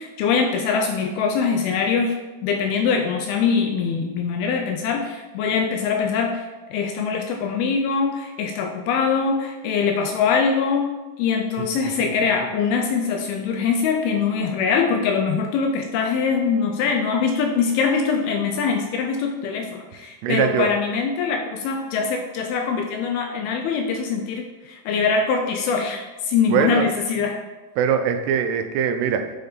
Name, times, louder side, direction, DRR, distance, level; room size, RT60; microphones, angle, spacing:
voice 1, 0.0-2.1 2.4-6.4 6.7-10.9 11.2-27.4, left 5 dB, 80° left, 4 dB, 2.3 m, -23 dB
voice 2, 20.2-20.7 26.5-26.8 27.8-29.3, right 7 dB, 85° right, 7 dB, 2.6 m, -21 dB
7.7 x 3.3 x 4.0 m, 1.2 s
omnidirectional pair, 4.7 m